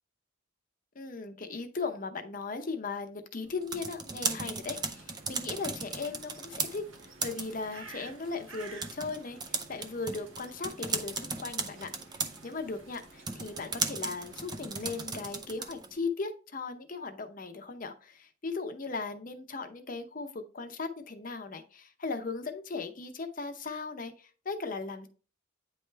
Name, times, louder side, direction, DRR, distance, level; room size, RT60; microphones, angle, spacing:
voice 1, 0.9-6.8 7.2-25.1, left 4 dB, 40° left, 6 dB, 0.7 m, -38 dB
sound 1, 3.5-16.0, right 4 dB, 20° right, 0.5 m, -37 dB
sound 2, 4.6-15.1, right 3 dB, 80° right, 1.2 m, -53 dB
9.1 x 3.3 x 3.3 m, 0.37 s
head